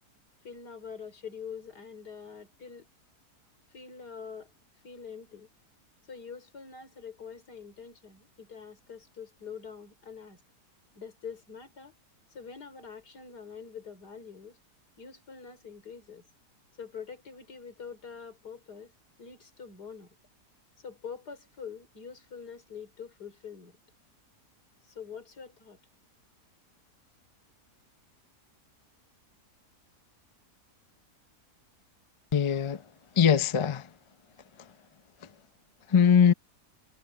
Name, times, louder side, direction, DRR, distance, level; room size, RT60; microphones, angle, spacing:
voice 1, 0.4-2.9 3.7-4.5 4.8-5.5 6.1-10.4 11.0-11.9 12.3-14.6 15.0-16.3 16.8-18.9 19.2-20.2 20.8-23.8 24.8-25.8, left 6 dB, 90° left, 4.4 m, -45 dB
voice 2, 32.3-32.8 33.1-33.9 34.6-34.7 35.2-35.3 35.9-36.3, left 7 dB, 40° left, 0.4 m, -22 dB
omnidirectional pair, 1.7 m